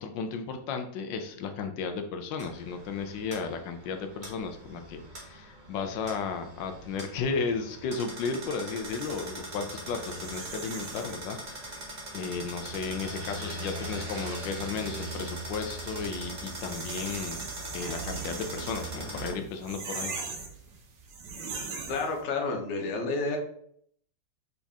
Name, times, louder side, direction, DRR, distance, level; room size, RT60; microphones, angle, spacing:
voice 1, 0.0-11.8 12.1-17.4 17.7-20.1, left 5 dB, 80° left, 7 dB, 1.3 m, -34 dB
sound 1, 2.4-19.3, right 2 dB, 30° right, 1.0 m, -40 dB
sound 2, 8.8-22.2, right 4 dB, 75° right, 1.4 m, -42 dB
voice 2, 21.9-23.4, left 3 dB, 50° left, 2 dB, 0.9 m, -30 dB
4.0 x 3.6 x 3.5 m, 0.66 s
omnidirectional pair, 2.0 m